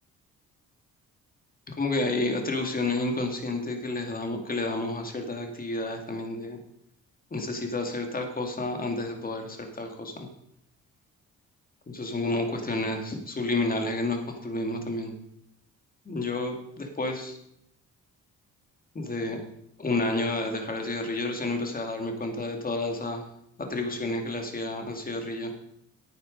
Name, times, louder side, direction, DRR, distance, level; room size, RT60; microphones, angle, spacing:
voice 1, 1.7-6.6 7.3-10.3 11.9-15.1 16.1-17.4 18.9-19.4 19.8-23.3 23.6-25.5, left 2 dB, 30° left, 4 dB, 2.4 m, -30 dB
9.7 x 8.7 x 5.3 m, 0.75 s
cardioid pair, 90°, 30 cm